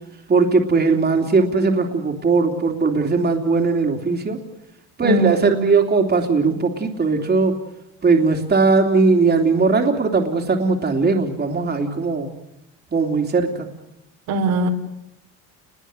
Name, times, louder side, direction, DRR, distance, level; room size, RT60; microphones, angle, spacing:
voice 1, 0.3-4.4 5.0-7.6 8.0-12.3 12.9-13.7, right 4 dB, 30° right, 2 dB, 3.3 m, -19 dB
voice 2, 5.0-5.6 14.3-14.7, right 2 dB, 70° right, 3 dB, 3.9 m, -21 dB
29.0 x 21.5 x 8.1 m, 0.87 s
supercardioid pair, 100°, 35 cm